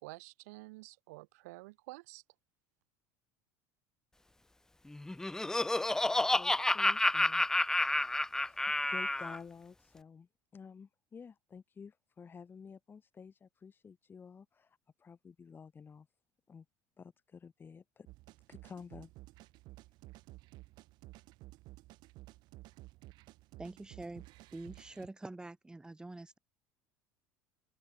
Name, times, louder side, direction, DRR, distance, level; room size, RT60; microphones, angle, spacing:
voice 1, 0.0-2.2, right 23 dB, 85° right, 5.2 m, -50 dB
Laughter, 4.9-9.4, left 2 dB, 5° left, 0.4 m, -30 dB
voice 2, 6.3-8.1 8.4-16.1 16.5-16.6 17.0-18.1 18.5-19.1, left 6 dB, 25° left, 4.7 m, -52 dB
sound 1, 18.1-25.1, right 20 dB, 65° right, 7.2 m, -54 dB
voice 3, 23.6-24.2 24.5-26.4, right 2 dB, 10° right, 5.1 m, -45 dB
open air
supercardioid pair, 110°, 8 cm